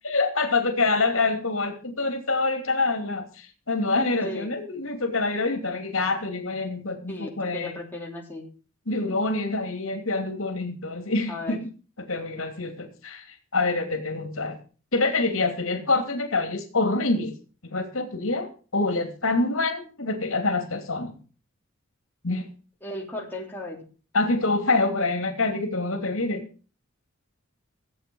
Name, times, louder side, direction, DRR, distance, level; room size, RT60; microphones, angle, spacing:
voice 1, 0.0-7.8 8.9-11.7 12.0-14.6 14.9-17.3 17.7-21.1 22.2-22.5 24.1-26.4, left 3 dB, 75° left, 5 dB, 2.8 m, -26 dB
voice 2, 7.1-8.5 11.3-11.6 22.8-23.9, left 1 dB, 10° left, -2 dB, 3.1 m, -35 dB
15.5 x 8.3 x 6.3 m, 0.38 s
head